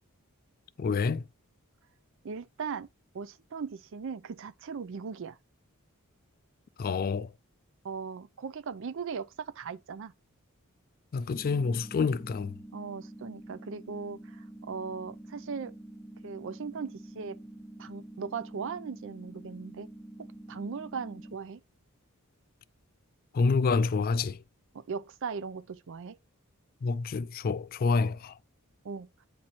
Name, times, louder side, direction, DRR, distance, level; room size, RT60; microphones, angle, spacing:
voice 1, 0.8-1.2 6.8-7.3 11.1-12.6 23.3-24.4 26.8-28.4, left 4 dB, 45° left, 0.3 m, -28 dB
voice 2, 2.2-2.9 3.1-5.4 7.8-10.1 12.7-15.7 16.2-17.4 17.8-19.9 20.5-21.6 24.7-26.2 28.8-29.1, right 5 dB, 60° right, 0.5 m, -38 dB
sound 1, 11.3-21.3, right 1 dB, 5° left, 0.7 m, -47 dB
8.5 x 3.0 x 4.2 m
head